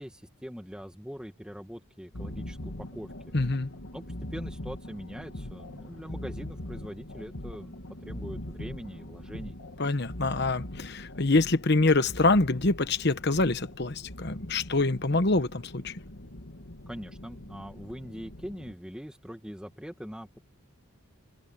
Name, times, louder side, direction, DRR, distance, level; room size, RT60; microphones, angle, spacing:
voice 1, 0.0-3.4 3.9-4.0 4.3-9.6 16.9-20.4, equal, 5° right, 1.9 m, -42 dB
sound 1, 2.1-18.7, left 1 dB, 70° left, 2.4 m, -42 dB
voice 2, 3.3-3.7 9.8-15.9, left 2 dB, 50° left, 1.1 m, -25 dB
head